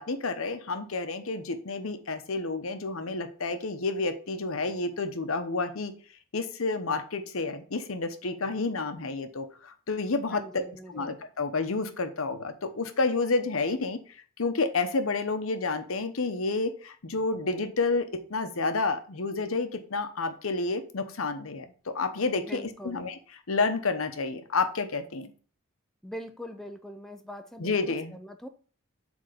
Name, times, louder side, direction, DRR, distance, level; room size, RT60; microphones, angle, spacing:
voice 1, 0.0-5.9 6.3-14.0 14.4-23.2 23.5-25.3 27.6-28.2, left 3 dB, 75° left, 9 dB, 0.9 m, -30 dB
voice 2, 10.3-11.1 22.4-23.0 26.0-28.5, equal, ahead, 6 dB, 0.5 m, -42 dB
7.7 x 3.5 x 5.0 m, 0.41 s
head